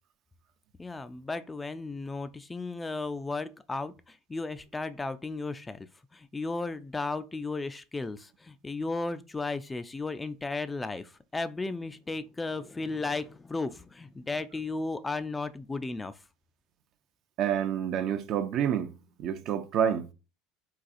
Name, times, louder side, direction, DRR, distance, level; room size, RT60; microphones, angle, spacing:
voice 1, 0.8-16.1, left 3 dB, 15° left, 0.3 m, -35 dB
voice 2, 17.4-18.9 19.2-20.1, right 9 dB, 55° right, 0.5 m, -28 dB
4.0 x 2.3 x 2.5 m
hypercardioid pair, 85°, 0 cm